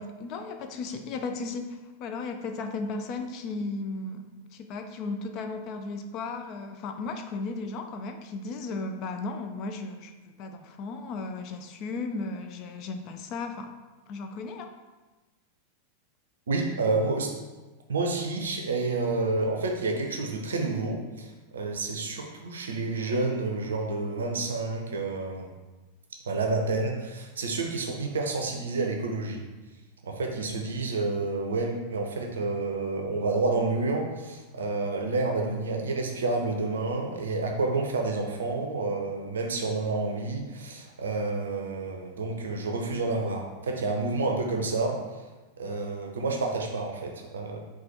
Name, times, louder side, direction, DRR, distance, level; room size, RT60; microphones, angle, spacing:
voice 1, 0.0-13.7 14.1-14.7, left 3 dB, 40° left, 6 dB, 0.3 m, -35 dB
voice 2, 16.5-17.3 17.9-25.5 26.3-29.4 30.0-45.2 45.6-47.6, right 3 dB, 65° right, 2 dB, 0.5 m, -29 dB
4.1 x 2.3 x 4.3 m, 1.2 s
figure-of-eight pair, 90°, 0 cm